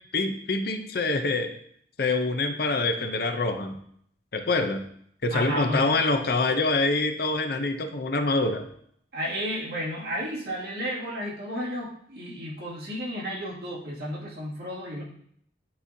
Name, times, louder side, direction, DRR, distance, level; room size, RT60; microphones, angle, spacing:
voice 1, 0.1-1.5 2.0-3.8 4.3-4.8 5.2-8.6, left 3 dB, 55° left, 7 dB, 0.6 m, -25 dB
voice 2, 5.3-6.0 9.1-15.0, equal, 60° right, -6 dB, 2.2 m, -32 dB
9.4 x 4.2 x 2.7 m, 0.66 s
head